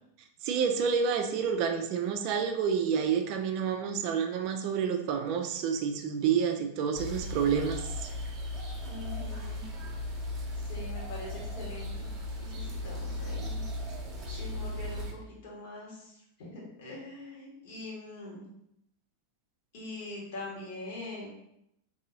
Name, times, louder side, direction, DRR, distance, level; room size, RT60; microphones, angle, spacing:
voice 1, 0.4-8.1, right 7 dB, 45° right, 5 dB, 0.3 m, -29 dB
sound 1, 6.9-15.1, left 1 dB, 25° right, 0.8 m, -37 dB
voice 2, 8.8-9.6 10.6-12.1 12.4-13.6 14.3-18.5 19.7-21.3, left 2 dB, 50° left, -4 dB, 1.4 m, -43 dB
3.7 x 2.7 x 2.8 m, 0.78 s
figure-of-eight pair, 90°, 0 cm